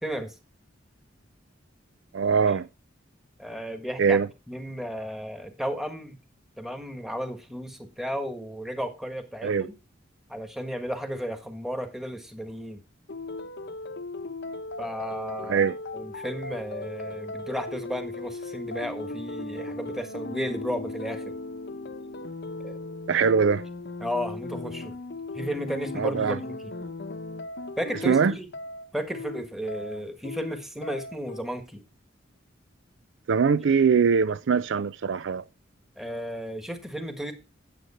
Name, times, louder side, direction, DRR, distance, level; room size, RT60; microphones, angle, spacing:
voice 1, 0.0-0.3 3.4-4.2 4.5-6.2 6.6-9.7 10.3-12.8 14.8-15.7 15.9-21.4 22.6-22.8 24.0-25.0 25.3-26.7 27.8-28.5 28.9-31.8 36.0-37.3, equal, ahead, 1.5 m, -34 dB
voice 2, 2.1-2.7 4.0-4.3 9.4-9.7 15.5-15.8 23.1-23.6 26.0-26.4 28.0-28.3 33.3-35.4, right 6 dB, 65° right, 0.4 m, -22 dB
sound 1, 13.1-31.4, left 2 dB, 60° left, 0.9 m, -37 dB
9.3 x 7.9 x 4.2 m
head